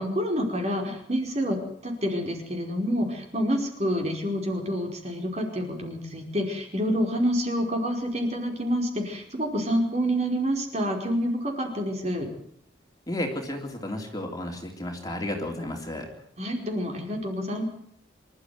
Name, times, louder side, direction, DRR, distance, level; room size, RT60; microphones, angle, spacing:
voice 1, 0.0-1.6 1.8-12.3 16.4-17.6, equal, 35° right, 2 dB, 4.9 m, -28 dB
voice 2, 13.1-16.1, left 1 dB, 20° left, 2 dB, 3.2 m, -32 dB
26.0 x 13.0 x 9.6 m, 0.71 s
head